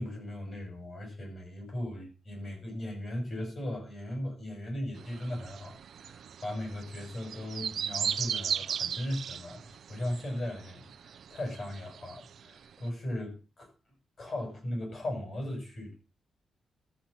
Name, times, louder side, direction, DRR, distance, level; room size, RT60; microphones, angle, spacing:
voice 1, 0.0-5.8 6.0-13.7 14.2-15.9, left 1 dB, 35° left, 7.1 m, -37 dB
sound 1, 5.0-12.5 12.8-12.9, right 8 dB, 55° right, 0.5 m, -37 dB
13.0 x 6.7 x 5.8 m
wide cardioid pair, 165°, 0 cm